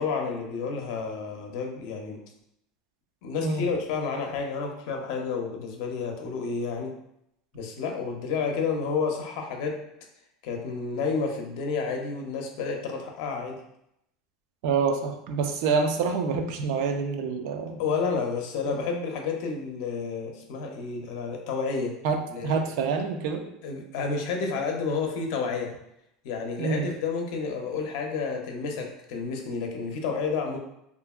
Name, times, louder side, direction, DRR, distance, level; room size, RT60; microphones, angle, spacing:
voice 1, 0.0-2.2 3.2-6.9 7.5-9.8 10.4-13.6 17.8-22.0 22.3-22.6 23.6-25.7 26.2-30.6, left 5 dB, 70° left, 2 dB, 0.5 m, -30 dB
voice 2, 14.6-17.8 18.7-18.8 22.0-23.4 26.6-26.9, right 5 dB, 70° right, 5 dB, 0.4 m, -27 dB
2.8 x 2.4 x 2.3 m, 0.80 s
supercardioid pair, 135°, 2 cm